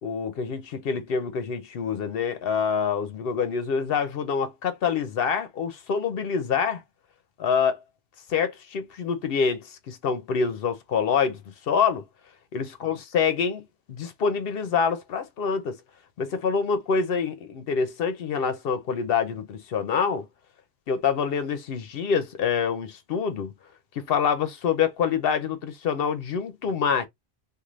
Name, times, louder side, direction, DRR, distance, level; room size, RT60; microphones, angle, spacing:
voice 1, 0.0-6.8 7.4-7.8 8.3-12.0 12.5-15.8 16.2-20.3 20.9-23.5 24.0-27.1, left 6 dB, 70° left, 0.8 m, -26 dB
2.5 x 2.5 x 3.0 m
omnidirectional pair, 1.1 m